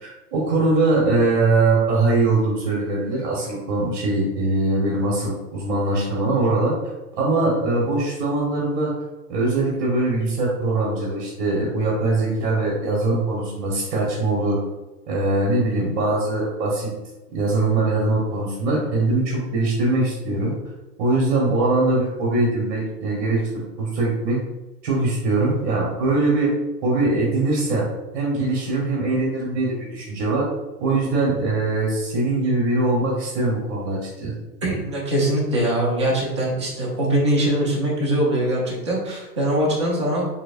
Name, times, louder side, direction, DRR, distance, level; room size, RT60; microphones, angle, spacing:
voice 1, 0.0-6.7 7.2-8.9 9.3-14.6 15.1-16.9 17.3-20.5 21.0-23.4 23.8-24.4 24.8-26.5 26.8-27.8 28.1-30.4 30.8-34.3, right 2 dB, 45° right, -4 dB, 1.1 m, -22 dB
voice 2, 34.6-40.3, right 1 dB, 20° right, -4 dB, 0.3 m, -22 dB
3.8 x 2.8 x 2.4 m, 1.1 s
hypercardioid pair, 135°, 49 cm